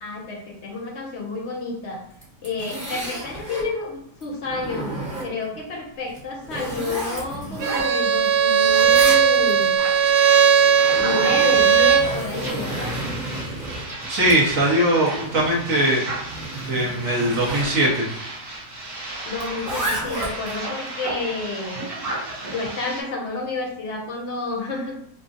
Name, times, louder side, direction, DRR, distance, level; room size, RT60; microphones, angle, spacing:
voice 1, 0.0-2.0 2.4-9.7 10.8-13.0 19.3-21.9 22.4-25.0, left 3 dB, 55° left, 0 dB, 0.9 m, -30 dB
Zipper (clothing), 2.1-3.7 4.2-5.6 6.1-8.3 8.6-9.7 10.6-17.7 19.4-20.6, right 1 dB, 5° right, 1.2 m, -32 dB
Bowed string instrument, 7.6-12.1, right 7 dB, 80° right, 1.1 m, -17 dB
sound 1, 9.8-23.0, right 2 dB, 35° right, 1.4 m, -34 dB
voice 2, 14.1-16.0 16.7-18.1, right 1 dB, 55° right, -4 dB, 1.4 m, -20 dB
4.4 x 2.3 x 2.6 m, 0.71 s
omnidirectional pair, 1.8 m